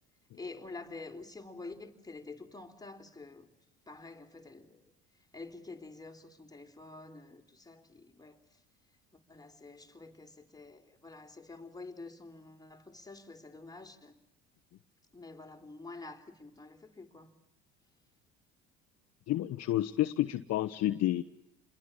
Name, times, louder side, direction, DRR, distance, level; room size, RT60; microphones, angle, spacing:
voice 1, 0.3-3.5 3.9-4.9 5.3-8.6 9.1-14.2 15.1-17.3, left 3 dB, 10° left, 3.5 m, -48 dB
voice 2, 19.3-21.2, left 14 dB, 55° left, 1.1 m, -30 dB
28.0 x 22.0 x 8.8 m
hypercardioid pair, 70°, 31 cm